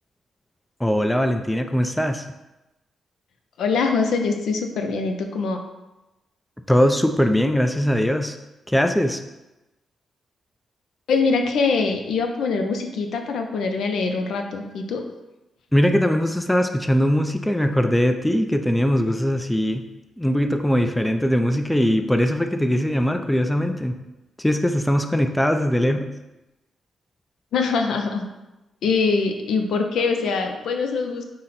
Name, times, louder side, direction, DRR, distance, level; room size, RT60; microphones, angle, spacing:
voice 1, 0.8-2.2 6.7-8.3 8.7-9.2 15.7-19.8 20.2-24.0 24.4-26.1, equal, 5° left, 6 dB, 0.3 m, -21 dB
voice 2, 3.6-5.6 11.1-15.0 27.5-28.3 28.8-31.2, left 4 dB, 80° left, 4 dB, 0.5 m, -23 dB
5.6 x 2.1 x 3.9 m, 1.0 s
cardioid pair, 85°, 0 cm